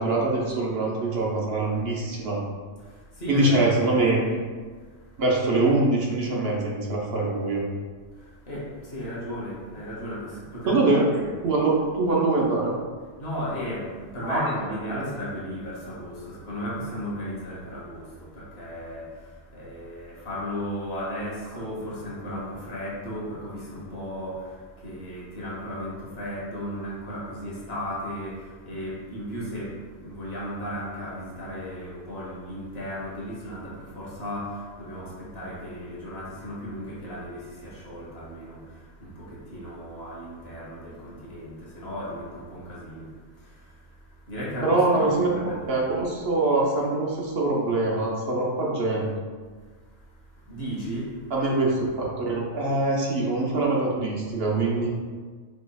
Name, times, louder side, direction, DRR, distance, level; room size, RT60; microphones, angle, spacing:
voice 1, 0.0-2.4 3.3-4.2 5.2-7.6 10.7-11.0 11.4-12.7 14.2-14.4 44.6-45.3 45.7-49.2 51.3-54.9, right 2 dB, 60° right, -3 dB, 0.9 m, -23 dB
voice 2, 3.1-4.0 4.2-4.4 8.2-11.4 13.2-38.7 39.0-43.1 43.4-43.5 44.3-45.8 50.5-51.2, equal, 60° left, -5 dB, 1.4 m, -35 dB
5.2 x 3.4 x 2.3 m, 1.5 s
omnidirectional pair, 1.2 m